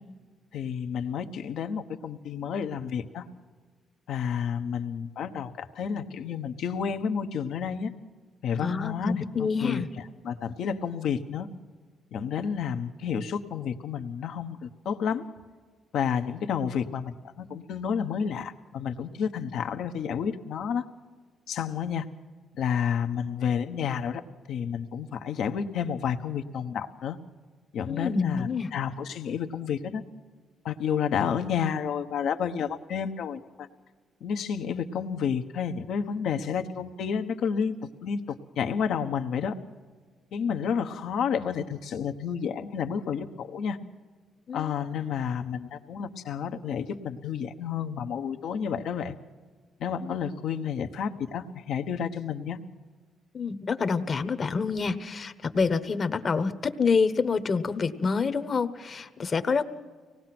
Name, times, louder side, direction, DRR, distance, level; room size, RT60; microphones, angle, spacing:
voice 1, 0.5-3.2 4.1-7.9 8.4-11.5 12.1-15.2 15.9-20.8 21.5-22.1 22.6-24.2 24.5-27.2 27.7-30.0 30.6-33.7 34.2-39.5 40.3-43.8 44.5-49.2 49.8-52.6, left 7 dB, 75° left, 7 dB, 1.1 m, -30 dB
voice 2, 8.5-9.9 27.9-28.7 44.5-44.8 50.0-50.1 53.3-59.6, left 5 dB, 40° left, 10 dB, 1.1 m, -27 dB
24.5 x 19.0 x 6.1 m, 1.5 s
cardioid pair, 90°, 0 cm